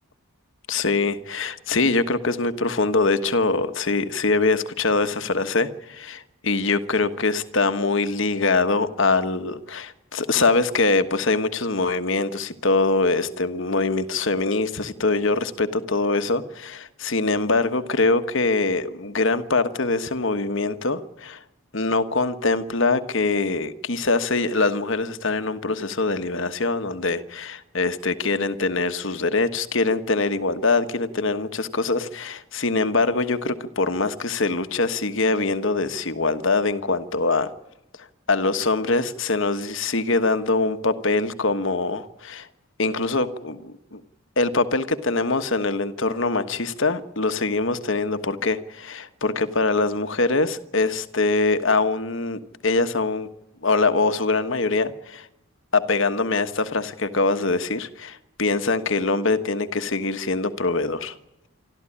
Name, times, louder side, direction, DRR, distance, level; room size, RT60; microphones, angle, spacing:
voice 1, 0.7-21.4 21.7-37.5 38.3-42.5 42.8-44.0 44.4-53.3 53.6-55.3 55.7-61.2, left 3 dB, 60° left, 1.3 m, -23 dB
27.0 x 13.0 x 10.0 m
head